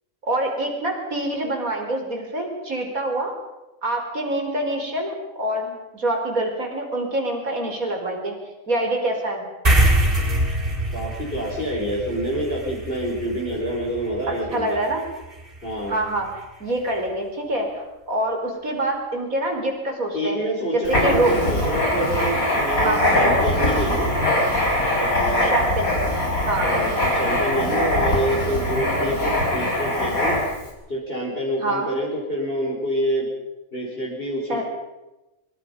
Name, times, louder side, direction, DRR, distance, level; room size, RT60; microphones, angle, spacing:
voice 1, 0.2-3.3 3.8-8.3 8.7-9.4 14.5-15.0 15.9-16.3 16.6-20.4 20.7-21.3 22.8-23.5 25.4-25.9 26.4-26.7 31.6-31.9 34.5-34.6, right 1 dB, 85° right, 3 dB, 5.1 m, -25 dB
sound 1, 9.6-16.4, right 1 dB, 40° right, 6.0 m, -25 dB
voice 2, 10.9-14.8 15.6-16.0 20.1-24.1 25.0-25.5 26.4-30.4 30.9-33.3 33.7-34.6, equal, 40° left, -4 dB, 5.6 m, -27 dB
Writing, 20.8-30.7, left 1 dB, 85° left, 5.7 m, -22 dB
24.5 x 24.0 x 5.5 m, 1.0 s
omnidirectional pair, 1.4 m